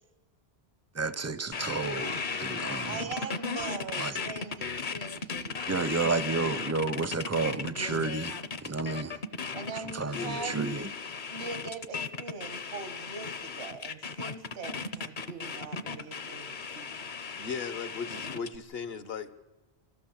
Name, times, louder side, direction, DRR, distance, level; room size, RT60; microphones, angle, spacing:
voice 1, 1.0-3.0 4.0-4.1 5.7-9.2 9.7-10.9, right 4 dB, 20° right, 0.5 m, -31 dB
sound 1, 1.5-18.6, left 5 dB, 50° left, 0.9 m, -36 dB
voice 2, 2.9-5.6 9.5-10.5 11.3-17.1, right 4 dB, 85° right, 1.6 m, -41 dB
voice 3, 10.1-10.6 17.4-19.4, left 6 dB, 70° left, 1.2 m, -37 dB
25.5 x 15.5 x 7.2 m
omnidirectional pair, 1.1 m